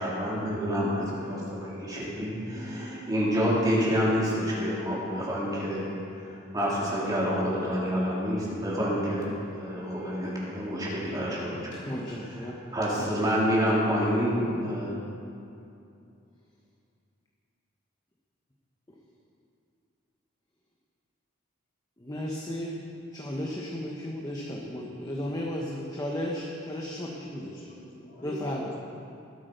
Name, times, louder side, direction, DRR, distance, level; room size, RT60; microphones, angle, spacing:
voice 1, 0.0-5.8 6.2-9.2 9.6-11.9 12.4-14.9, equal, 20° right, -7 dB, 3.2 m, -28 dB
voice 2, 11.8-12.6 22.0-22.8 23.1-27.7 28.2-28.7, left 1 dB, 20° left, -2 dB, 1.1 m, -34 dB
voice 3, 27.4-28.8, left 1 dB, 45° left, -5 dB, 3.3 m, -42 dB
20.5 x 8.5 x 5.2 m, 2.6 s
head